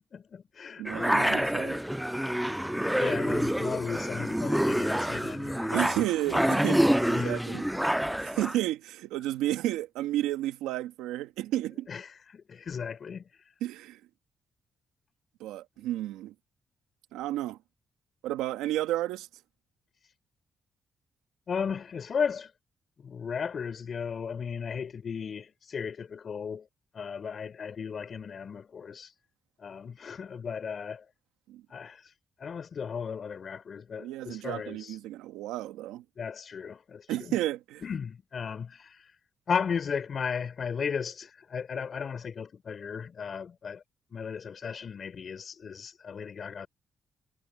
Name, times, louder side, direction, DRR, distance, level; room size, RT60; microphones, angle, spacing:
voice 1, 0.1-1.6 3.0-6.0 7.0-7.6 11.9-13.4 21.5-22.5 23.0-26.7 26.9-29.1 29.6-31.1 31.7-32.1 32.4-35.0 36.2-37.4 37.8-39.1 39.5-43.8 44.1-46.7, left 6 dB, 55° left, 4.3 m, -35 dB
voice 2, 0.8-1.8 5.7-7.7 8.2-11.9 13.6-14.0 15.4-16.3 17.1-17.6 18.2-19.3 31.5-31.6 34.0-36.0 37.1-37.8, right 14 dB, 90° right, 1.8 m, -32 dB
sound 1, 0.9-8.6, equal, 5° right, 0.4 m, -27 dB
supercardioid pair, 55°, 0 cm